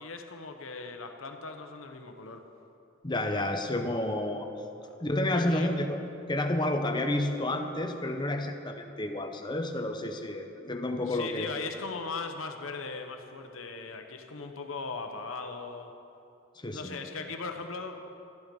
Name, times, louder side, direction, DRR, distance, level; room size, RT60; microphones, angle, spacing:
voice 1, 0.0-2.5 4.8-5.0 5.3-5.8 11.1-15.9 16.7-18.1, left 4 dB, 90° left, 5 dB, 1.0 m, -39 dB
voice 2, 3.0-4.5 5.0-6.0 6.3-11.5 16.6-17.0, left 1 dB, 20° left, 5 dB, 0.8 m, -30 dB
13.0 x 12.0 x 5.3 m, 2.8 s
head